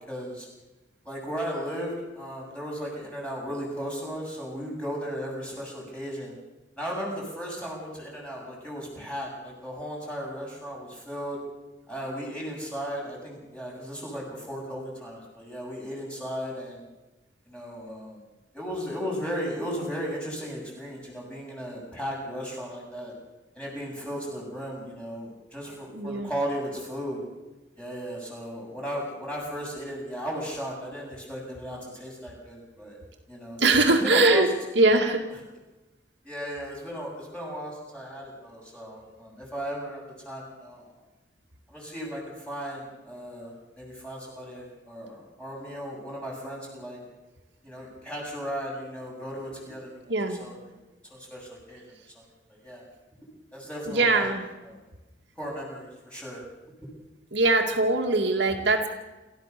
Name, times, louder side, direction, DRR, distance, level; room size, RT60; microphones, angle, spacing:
voice 1, 0.1-0.5 1.0-6.4 6.8-11.4 11.9-16.8 17.5-18.2 18.5-23.1 23.5-27.2 27.8-33.0 33.3-33.6 33.9-34.4 36.2-41.0 41.7-47.0 47.6-50.1 50.4-50.6 51.1-51.8 52.1-52.2 52.5-52.8 53.2-54.3 54.7-54.8 55.4-56.4 56.8-56.9, equal, 5° left, -3 dB, 7.5 m, -36 dB
voice 2, 25.9-26.3 33.6-34.5 34.8-35.2 50.1-50.4 53.9-54.5 57.3-58.9, right 2 dB, 65° right, 2 dB, 2.2 m, -22 dB
28.0 x 14.5 x 6.8 m, 1.1 s
head